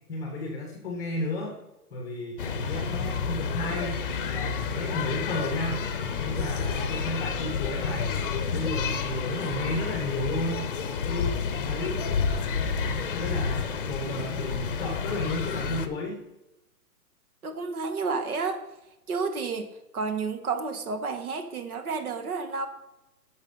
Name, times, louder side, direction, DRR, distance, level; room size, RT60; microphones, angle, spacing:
voice 1, 0.1-1.6 1.9-4.0 4.3-5.8 6.2-8.1 8.5-10.7 11.0-12.0 13.1-16.2, left 2 dB, 5° left, 2 dB, 0.9 m, -33 dB
sound 1, 2.4-15.9, left 5 dB, 35° left, 0.8 m, -30 dB
voice 2, 17.4-18.6 19.1-19.7 19.9-22.7, right 4 dB, 65° right, 8 dB, 1.7 m, -30 dB
10.5 x 6.6 x 5.5 m, 0.94 s
hypercardioid pair, 170°, 47 cm